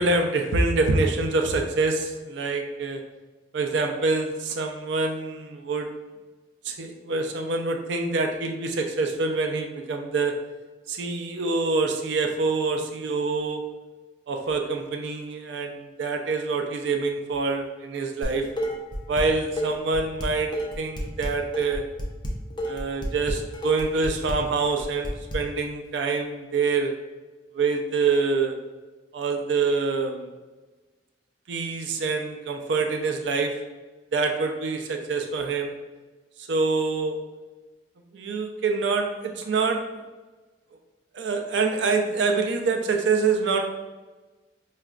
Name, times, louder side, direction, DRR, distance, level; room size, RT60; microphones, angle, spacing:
voice 1, 0.0-3.0 3.5-5.9 6.6-10.3 10.9-13.6 14.3-18.5 19.1-20.5 20.8-21.8 22.7-26.9 27.5-28.6 29.1-30.3 31.5-33.5 34.1-35.7 36.5-37.2 38.1-40.0 41.1-43.6, right 4 dB, 85° right, 4 dB, 0.4 m, -26 dB
Dishes pots and pans, 18.2-19.2 19.6-25.4, equal, 25° left, 0.5 m, -30 dB
4.7 x 2.2 x 2.4 m, 1.2 s
head